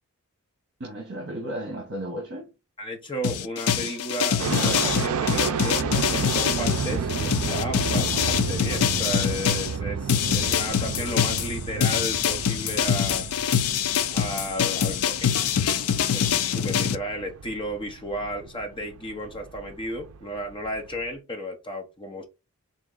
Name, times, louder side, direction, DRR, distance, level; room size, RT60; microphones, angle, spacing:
voice 1, 0.8-2.5 14.8-15.0, right 1 dB, 50° right, 1.0 m, -34 dB
voice 2, 2.8-13.3 14.1-15.3 15.7-22.2, equal, 25° left, 1.0 m, -33 dB
sound 1, 3.2-9.7 10.1-17.0, left 8 dB, 75° left, 0.4 m, -24 dB
sound 2, 4.4-21.1, right 6 dB, 70° right, 0.4 m, -32 dB
3.8 x 2.9 x 3.8 m
head